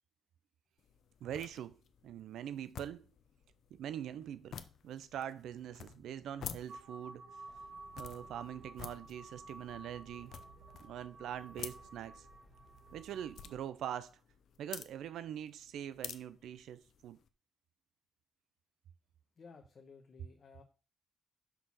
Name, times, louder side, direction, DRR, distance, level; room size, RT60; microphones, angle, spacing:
sound 1, 0.8-17.3, left 8 dB, 65° left, 0.6 m, -52 dB
voice 1, 1.2-1.7 2.0-3.1 3.7-7.2 8.0-10.3 10.8-12.3 12.9-14.2 14.6-17.2, right 10 dB, 80° right, 0.4 m, -43 dB
sound 2, 6.7-13.5, right 3 dB, 55° right, 1.6 m, -53 dB
sound 3, 7.5-13.6, right 1 dB, ahead, 2.3 m, -62 dB
voice 2, 19.4-20.6, left 5 dB, 45° left, 1.0 m, -56 dB
5.9 x 3.8 x 6.1 m
cardioid pair, 110°, 0 cm